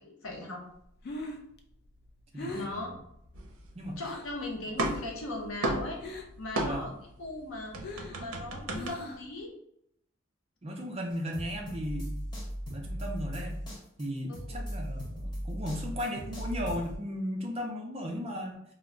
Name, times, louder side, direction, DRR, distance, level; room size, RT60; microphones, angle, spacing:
voice 1, 0.0-0.6 2.5-2.9 4.0-6.0 6.4-6.9 7.2-7.7 8.1-9.5 14.3-14.7, left 2 dB, 80° left, 0 dB, 0.7 m, -38 dB
Breathing, 0.8-4.4 4.7-5.2 5.5-6.5 6.8-9.4, left 2 dB, 50° left, 0.3 m, -42 dB
voice 2, 2.3-3.0 3.8-4.0 6.6-6.8 10.6-12.1 12.7-13.6 14.0-18.6, equal, 30° right, 1 dB, 0.4 m, -36 dB
sound 1, 3.3-4.3 4.5-7.1 7.4-8.9, right 2 dB, 90° right, 0.5 m, -34 dB
sound 2, 11.1-17.0, equal, 20° left, 0.7 m, -38 dB
2.2 x 2.1 x 3.7 m, 0.74 s
head